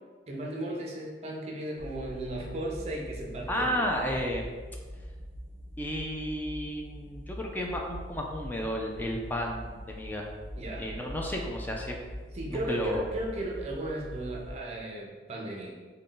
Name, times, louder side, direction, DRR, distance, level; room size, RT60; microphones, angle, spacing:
voice 1, 0.3-3.8 10.6-11.1 12.3-15.7, right 1 dB, 35° right, -1 dB, 0.6 m, -35 dB
sound 1, 1.8-14.6, equal, 80° left, 1.0 m, -43 dB
voice 2, 3.5-4.5 5.8-10.3 10.8-12.0 12.5-13.1, equal, 10° left, 0 dB, 0.3 m, -32 dB
3.7 x 2.2 x 3.8 m, 1.4 s
head